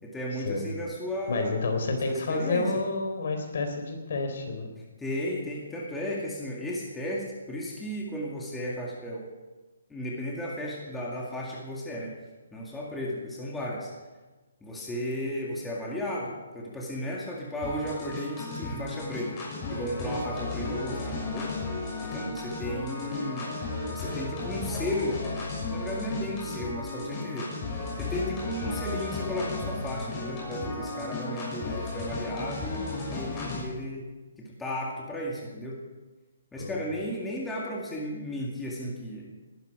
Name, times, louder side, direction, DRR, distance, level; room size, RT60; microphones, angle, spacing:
voice 1, 0.0-1.6 1.9-2.7 5.0-9.3 9.9-12.1 12.5-13.9 14.6-21.5 22.0-23.5 23.9-25.2 25.7-27.5 28.0-34.1 34.4-35.8 36.5-39.3, left 1 dB, 5° left, -4 dB, 2.1 m, -34 dB
voice 2, 1.3-4.7 36.6-36.8, left 3 dB, 60° left, 5 dB, 4.1 m, -29 dB
sound 1, 17.6-33.6, left 3 dB, 20° left, 6.4 m, -34 dB
19.5 x 12.5 x 5.0 m, 1.2 s
hypercardioid pair, 160°, 0 cm